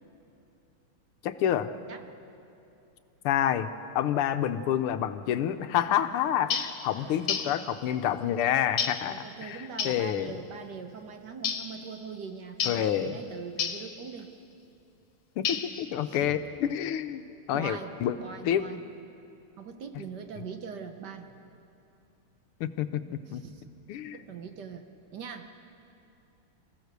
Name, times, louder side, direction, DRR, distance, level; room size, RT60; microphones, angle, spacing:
voice 1, 1.2-1.7 3.2-3.7 3.9-9.6 9.8-10.3 12.7-13.2 15.4-17.2 17.5-18.2 18.4-18.6 22.6-23.0 23.3-23.4 23.9-24.2, left 10 dB, 90° left, 10 dB, 1.7 m, -28 dB
sound 1, 6.5-6.8 7.3-7.6 8.8-9.1 9.8-10.0 11.4-11.7 12.6-12.9 13.6-13.9 15.4-15.9, left 7 dB, 70° left, 2.0 m, -30 dB
voice 2, 7.0-7.3 9.0-14.3 16.0-16.4 17.5-18.8 19.6-21.4 23.3-23.6 24.1-24.9 25.1-25.5, right 6 dB, 60° right, 6 dB, 1.4 m, -42 dB
27.0 x 15.5 x 6.7 m, 2.7 s
omnidirectional pair, 2.4 m